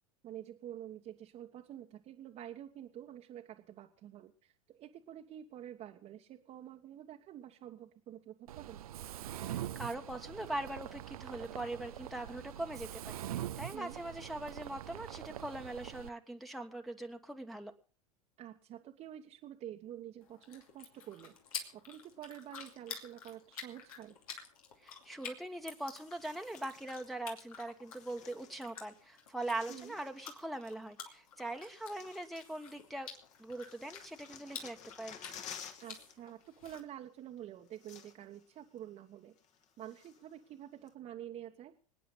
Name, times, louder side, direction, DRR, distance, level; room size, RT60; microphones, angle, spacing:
voice 1, 0.2-8.8 13.7-14.0 18.4-21.3 21.7-24.2 29.7-30.0 35.8-39.3 39.8-41.7, right 11 dB, 35° right, 2 dB, 1.3 m, -48 dB
Mechanisms, 8.5-16.1, right 12 dB, 75° right, 0.6 m, -44 dB
voice 2, 9.5-17.7 24.8-33.1 33.4-35.2, right 1 dB, ahead, 3 dB, 1.4 m, -42 dB
sound 1, 20.2-36.8, left 6 dB, 70° left, 2.7 m, -50 dB
sound 2, 26.0-27.1 27.8-28.9 29.2-30.4 31.2-31.3 31.7-32.9 33.1-36.2 36.4-36.6 37.4-37.5 37.7-38.4 38.8-38.9 39.4-40.3 40.9-41.0, left 8 dB, 40° left, 1.9 m, -53 dB
26.0 x 9.3 x 3.9 m, 0.38 s
figure-of-eight pair, 85°, 19 cm